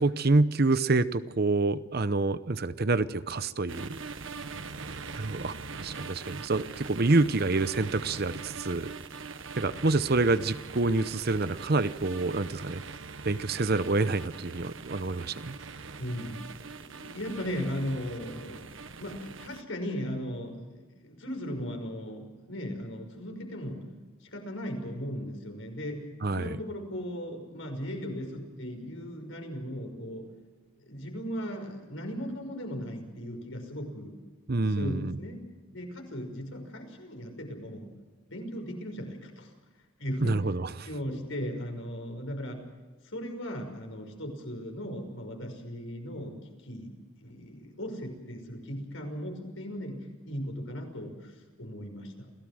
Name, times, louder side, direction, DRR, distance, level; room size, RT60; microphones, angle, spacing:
voice 1, 0.0-4.0 5.1-8.9 9.5-12.8 13.2-15.6 26.2-26.6 34.5-35.2 40.2-40.9, right 3 dB, 45° right, 13 dB, 0.8 m, -27 dB
sound 1, 3.7-19.6, right 4 dB, 65° right, 1.2 m, -42 dB
voice 2, 4.4-4.8 16.0-18.7 19.0-23.8 24.2-26.0 26.3-30.3 30.8-34.1 34.7-35.4 35.7-37.9 38.3-39.5 40.0-40.3 40.8-42.6 43.0-46.9 47.2-52.3, equal, 65° left, 4 dB, 5.8 m, -37 dB
28.0 x 17.5 x 6.4 m, 1.3 s
head